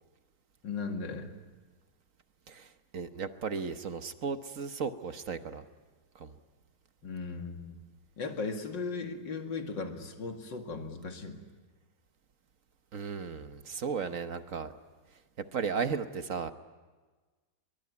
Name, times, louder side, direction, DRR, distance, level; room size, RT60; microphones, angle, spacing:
voice 1, 0.6-1.3 7.0-7.8 8.2-11.4, left 4 dB, 80° left, 4 dB, 2.8 m, -37 dB
voice 2, 2.5-5.6 6.1-6.3 12.9-14.7 15.5-16.5, right 5 dB, 50° right, 9 dB, 1.3 m, -35 dB
24.5 x 22.5 x 9.6 m, 1.3 s
omnidirectional pair, 1.9 m